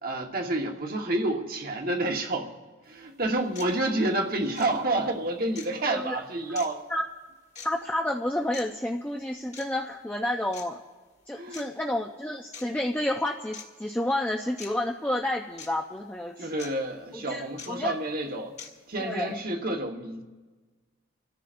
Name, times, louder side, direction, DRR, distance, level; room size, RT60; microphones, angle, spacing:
voice 1, 0.0-2.5 2.9-6.8 11.3-11.7 16.4-18.5 18.9-20.2, right 2 dB, 45° right, 1.2 m, -29 dB
sound 1, 2.8-2.9 3.5-3.7 4.5-4.7 5.5-5.7 6.5-6.7 7.5-7.7 8.5-8.6 9.5-9.7 10.5-10.6 11.5-11.6 12.5-12.7 13.5-13.7 14.6-14.7 15.6-15.7 16.6-16.7 17.6-17.7 18.6-18.7, left 6 dB, 35° left, 1.6 m, -42 dB
voice 2, 5.9-6.2 6.9-7.0 7.6-10.8 11.3-16.6 17.1-17.9 19.0-19.4, left 1 dB, 10° left, 0.5 m, -30 dB
27.0 x 14.0 x 2.5 m
head